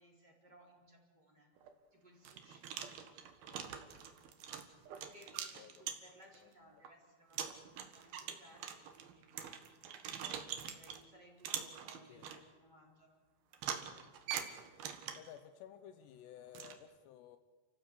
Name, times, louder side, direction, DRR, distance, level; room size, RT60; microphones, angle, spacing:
voice 1, 0.0-1.5 1.9-3.3 4.9-9.3 10.6-13.2, equal, 25° right, -1 dB, 4.3 m, -62 dB
Old Padlock, 1.6-1.7 2.2-6.4 6.8-6.9 7.3-11.0 11.4-12.4 13.5-15.4 16.5-16.7, right 8 dB, 65° right, 3.2 m, -44 dB
voice 2, 15.2-17.4, left 10 dB, 75° left, 9 dB, 3.0 m, -54 dB
30.0 x 16.0 x 8.4 m, 1.4 s
omnidirectional pair, 5.2 m